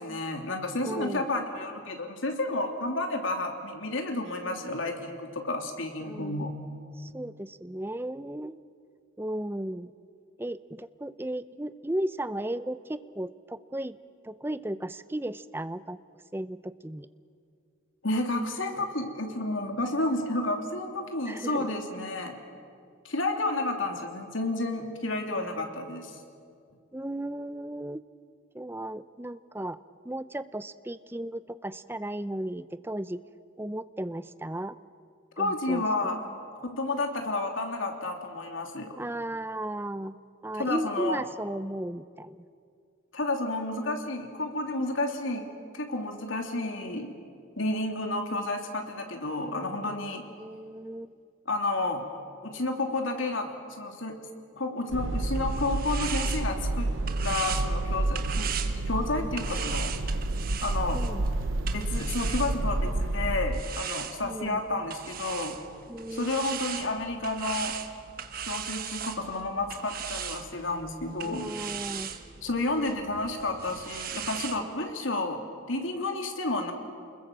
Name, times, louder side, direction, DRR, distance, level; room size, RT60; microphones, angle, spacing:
voice 1, 0.0-6.5 18.0-22.3 23.0-26.2 35.4-36.2 36.5-39.0 40.5-41.2 43.1-45.5 45.7-47.1 47.6-50.2 51.5-52.1 52.4-54.2 54.5-56.9 57.2-58.5 58.9-59.9 60.6-61.1 61.7-65.6 66.1-67.8 68.4-71.5 72.4-75.4 75.7-76.7, left 2 dB, 80° left, 3 dB, 3.0 m, -31 dB
voice 2, 0.8-1.2 6.0-6.5 7.0-8.6 9.2-9.9 10.4-14.0 14.2-16.0 16.3-17.1 21.3-21.7 26.9-28.0 28.5-29.8 30.0-33.2 33.6-34.8 35.4-35.8 39.0-40.1 40.4-42.4 50.4-51.1 60.9-61.2 64.2-64.6 65.9-66.5 71.2-72.1, right 1 dB, 10° right, 14 dB, 0.5 m, -35 dB
sound 1, 54.9-63.6, right 2 dB, 75° right, 0.8 m, -29 dB
sound 2, 55.1-62.9 63.5-74.6, right 8 dB, 45° right, 1.3 m, -39 dB
29.5 x 21.5 x 7.5 m, 2.3 s
head